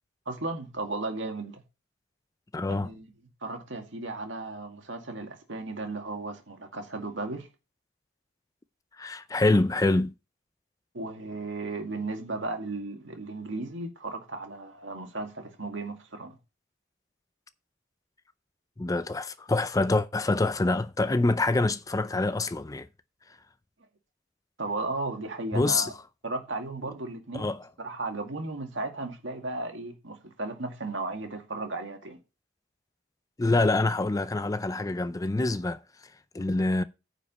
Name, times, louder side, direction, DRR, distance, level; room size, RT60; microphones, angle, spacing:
voice 1, 0.3-1.6 2.7-3.1 3.4-7.5 10.9-16.4 24.6-25.9 26.2-27.5 27.8-32.2, right 2 dB, 70° right, 2.1 m, -35 dB
voice 2, 2.5-2.9 9.0-10.1 18.8-22.9 25.5-25.9 27.3-27.6 33.4-35.8 36.3-36.8, left 2 dB, 20° left, 0.4 m, -25 dB
9.6 x 5.1 x 5.5 m
head